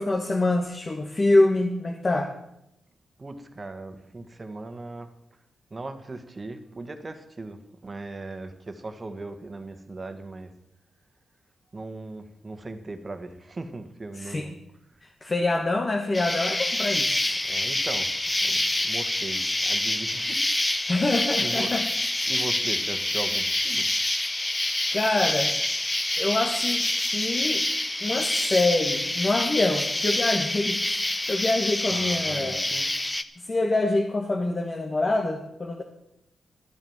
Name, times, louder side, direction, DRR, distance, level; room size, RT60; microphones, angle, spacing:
voice 1, 0.0-2.3 14.2-14.5 15.0-17.4 20.9-21.9 24.9-25.5 26.2-27.6 28.0-32.6 33.4-35.8, left 2 dB, 35° left, 3 dB, 1.5 m, -25 dB
voice 2, 3.2-5.1 5.7-10.5 11.7-14.6 14.9-15.0 17.4-20.9 21.4-21.7 22.3-24.9 26.0-26.3 31.9-32.9, right 2 dB, 30° right, 8 dB, 1.6 m, -39 dB
Insect, 16.1-33.2, left 1 dB, 15° left, 0.8 m, -27 dB
12.5 x 9.2 x 7.2 m, 0.81 s
cardioid pair, 85°, 0 cm